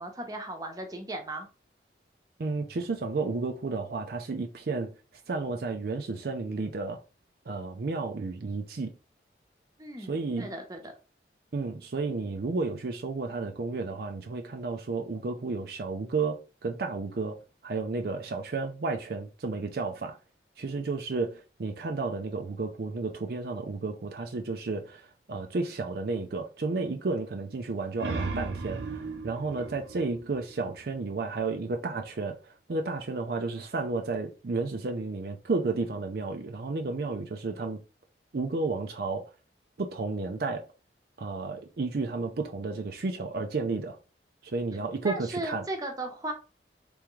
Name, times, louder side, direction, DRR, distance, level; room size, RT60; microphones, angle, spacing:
voice 1, 0.0-1.5 9.8-10.9 45.0-46.3, right 1 dB, 20° right, 0.8 m, -36 dB
voice 2, 2.4-4.9 5.3-7.0 7.5-8.9 10.1-10.5 11.5-20.2 20.6-37.8 38.3-39.2 39.8-40.6 41.2-44.0 44.4-45.6, right 3 dB, 60° right, 0.5 m, -32 dB
sound 1, 27.7-31.2, right 3 dB, 85° right, 0.8 m, -37 dB
3.5 x 3.5 x 3.1 m
head